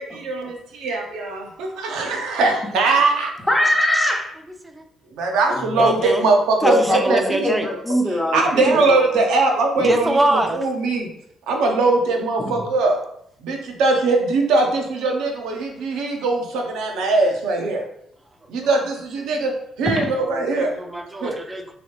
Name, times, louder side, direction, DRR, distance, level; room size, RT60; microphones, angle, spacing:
voice 1, 0.0-3.3 5.2-7.6 8.3-10.2 10.5-11.1 11.5-13.0 13.4-17.8 18.5-19.5 19.8-20.7 21.2-21.3, right 3 dB, 80° right, 2 dB, 0.7 m, -21 dB
voice 2, 3.5-4.3 5.5-5.9 6.6-9.0, left 1 dB, 15° left, -1 dB, 0.8 m, -22 dB
voice 3, 5.8-6.3 6.6-7.7 8.3-8.9 9.8-10.6 18.6-18.7 20.2-21.7, right 1 dB, 20° right, 5 dB, 0.6 m, -24 dB
3.1 x 3.0 x 3.1 m, 0.73 s
supercardioid pair, 55°, 0 cm